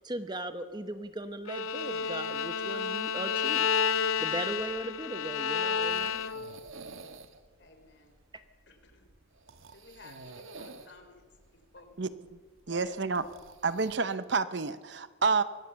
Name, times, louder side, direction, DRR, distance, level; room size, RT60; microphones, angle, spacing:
voice 1, 0.0-3.8 4.2-6.3, right 1 dB, 20° right, 10 dB, 0.8 m, -38 dB
Bowed string instrument, 1.5-6.6, left 6 dB, 85° left, 0.7 m, -30 dB
sound 1, 3.9-14.0, right 3 dB, 80° right, 1.5 m, -52 dB
voice 2, 7.6-8.2 8.7-9.1 9.7-11.2 11.5-12.0 12.7-13.4, left 2 dB, 60° left, 6 dB, 3.4 m, -52 dB
voice 3, 12.7-13.2 13.6-15.4, right 4 dB, 55° right, 13 dB, 0.8 m, -29 dB
23.0 x 17.0 x 7.0 m, 1.5 s
head